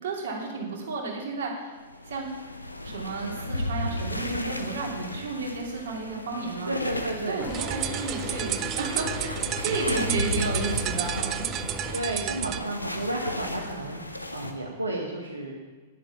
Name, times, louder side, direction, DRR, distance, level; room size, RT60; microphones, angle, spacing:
voice 1, 0.0-1.8 2.0-2.4 2.8-6.7 7.3-9.3 9.6-11.5, right 4 dB, 55° right, -2 dB, 2.9 m, -32 dB
sound 1, 1.9-14.5, left 1 dB, 85° left, 0.9 m, -34 dB
voice 2, 6.7-7.4 11.9-14.0 14.3-15.5, right 1 dB, 85° right, -3 dB, 1.4 m, -32 dB
Mechanisms / Drill, 7.4-12.9, left 2 dB, 5° left, 0.7 m, -40 dB
sound 2, 7.5-12.6, right 13 dB, 30° right, 0.4 m, -32 dB
10.5 x 7.7 x 7.1 m, 1.3 s
figure-of-eight pair, 100°, 0 cm